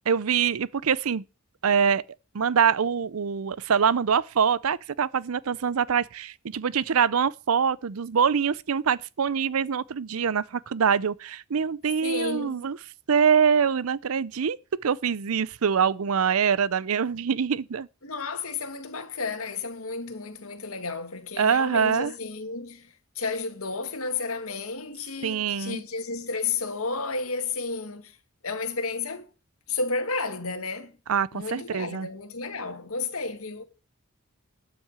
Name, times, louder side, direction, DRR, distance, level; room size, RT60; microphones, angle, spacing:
voice 1, 0.1-1.2 1.6-2.0 2.3-12.8 13.1-14.6 14.8-17.9 21.4-22.1 25.2-25.8 31.1-32.1, right 7 dB, 85° right, 0.6 m, -24 dB
voice 2, 12.0-12.6 18.0-28.2 28.4-29.3 29.7-30.9 31.3-33.6, left 4 dB, 85° left, 2.0 m, -32 dB
12.0 x 6.1 x 8.1 m
head